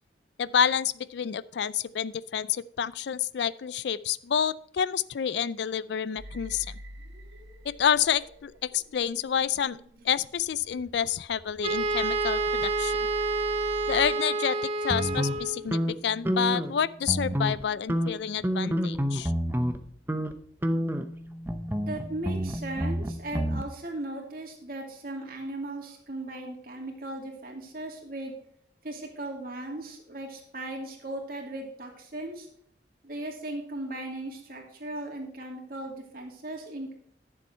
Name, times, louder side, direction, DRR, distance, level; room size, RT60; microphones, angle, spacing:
voice 1, 0.4-6.7 7.6-9.8 10.0-13.0 13.9-19.3, left 8 dB, 65° left, 19 dB, 0.4 m, -28 dB
sound 1, 6.2-14.1, equal, 70° right, 1.8 m, -46 dB
Wind instrument woodwind instrument, 11.6-15.7, right 3 dB, 35° right, 1.0 m, -28 dB
sound 2, 14.9-16.8 17.0-17.6 17.9-19.8 20.1-20.3 20.6-23.6, equal, 10° right, 0.7 m, -29 dB
voice 2, 21.9-28.3 28.8-32.5 33.0-36.9, right 1 dB, 50° right, 1 dB, 2.6 m, -37 dB
11.0 x 7.2 x 4.4 m, 0.65 s
head